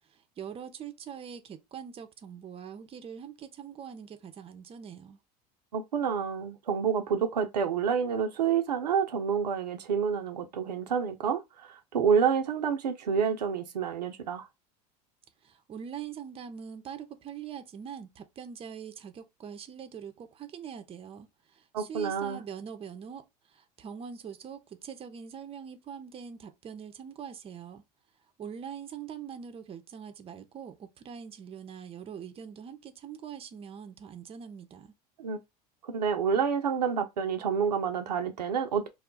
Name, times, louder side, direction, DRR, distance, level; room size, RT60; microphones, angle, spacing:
voice 1, 0.1-5.2 15.4-27.8 28.4-34.9, right 7 dB, 30° right, 0.6 m, -43 dB
voice 2, 5.7-14.5 21.7-22.4 35.2-35.4 35.8-38.9, right 7 dB, 90° right, 0.5 m, -28 dB
2.3 x 2.0 x 3.7 m
hypercardioid pair, 80°, 20 cm